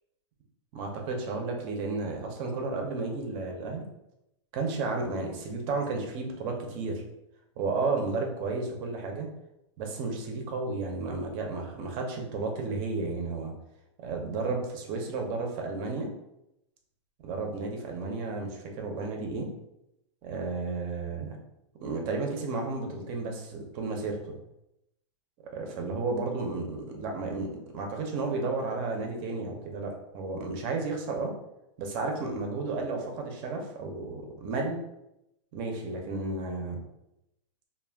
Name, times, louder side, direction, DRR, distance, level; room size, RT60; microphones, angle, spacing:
voice 1, 0.7-3.9 4.5-7.0 7.6-9.3 9.8-13.5 14.0-16.1 17.2-19.5 20.2-21.4 21.8-24.4 25.5-31.3 31.8-34.8 35.5-36.8, right 3 dB, 35° right, 2 dB, 0.5 m, -32 dB
2.3 x 2.1 x 3.3 m, 0.87 s
supercardioid pair, 150°, 16 cm